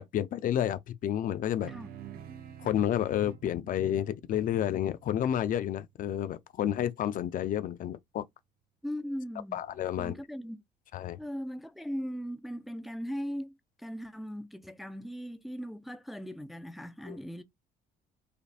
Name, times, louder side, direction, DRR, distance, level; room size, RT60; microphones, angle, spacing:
voice 1, 0.0-1.7 2.6-8.3 9.5-10.1 10.9-11.2 17.1-17.2, left 10 dB, 55° left, 0.5 m, -30 dB
sound 1, 1.6-6.3, right 9 dB, 65° right, 0.7 m, -49 dB
voice 2, 8.8-9.6 10.0-10.6 11.2-17.4, equal, ahead, 0.4 m, -39 dB
5.0 x 2.7 x 2.4 m
cardioid pair, 110°, 17 cm